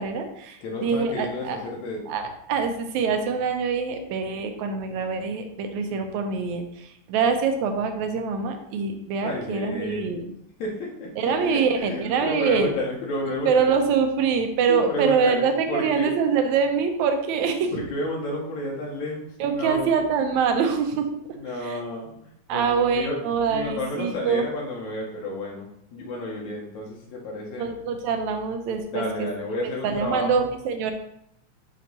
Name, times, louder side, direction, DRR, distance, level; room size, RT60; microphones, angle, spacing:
voice 1, 0.0-1.6 2.1-10.3 11.2-12.7 13.3-17.8 19.4-21.1 21.6-21.8 22.5-24.5 27.6-29.3 29.8-30.9, right 5 dB, 80° right, 5 dB, 2.1 m, -24 dB
voice 2, 0.6-2.2 9.2-10.2 10.6-13.8 14.7-16.2 17.7-20.0 21.4-23.2 23.5-27.7 28.9-30.4, left 1 dB, 80° left, -2 dB, 2.4 m, -31 dB
6.3 x 2.9 x 5.2 m, 0.75 s
omnidirectional pair, 3.3 m